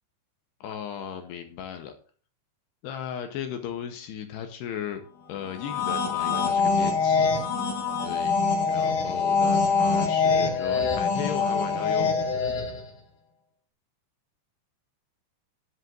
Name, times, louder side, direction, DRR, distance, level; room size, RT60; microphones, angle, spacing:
voice 1, 0.6-1.9 2.8-5.0 5.3-7.3 8.0-12.2, left 9 dB, 75° left, 6 dB, 2.6 m, -36 dB
sound 1, 5.5-12.9, left 4 dB, 60° left, 2.5 m, -24 dB
15.5 x 10.5 x 2.5 m, 0.42 s
omnidirectional pair, 5.4 m